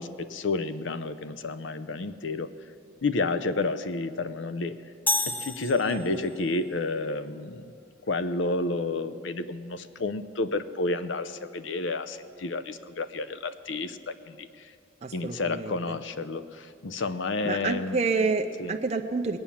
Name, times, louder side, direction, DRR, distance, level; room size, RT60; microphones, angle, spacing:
voice 1, 0.0-2.5 3.0-4.7 5.3-7.6 8.1-14.5 15.1-18.0 18.6-18.7, left 3 dB, 70° left, 12 dB, 0.6 m, -30 dB
sound 1, 5.1-6.5, left 2 dB, 10° left, 0.6 m, -30 dB
voice 2, 5.9-6.2 15.0-16.0 17.4-19.4, right 4 dB, 35° right, 4 dB, 0.4 m, -29 dB
20.5 x 8.8 x 7.2 m, 2.5 s
head